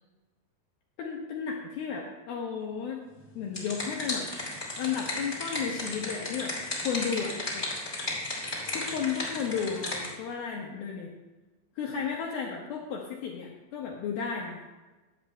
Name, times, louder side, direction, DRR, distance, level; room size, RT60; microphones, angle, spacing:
voice 1, 1.0-3.0 3.4-4.3 4.8-6.6 6.8-7.7 8.7-11.1 11.8-14.7, left 6 dB, 75° left, -1 dB, 2.3 m, -33 dB
sound 1, 3.2-10.1, left 1 dB, 15° left, 2.3 m, -34 dB
16.5 x 11.0 x 2.2 m, 1.2 s
omnidirectional pair, 5.3 m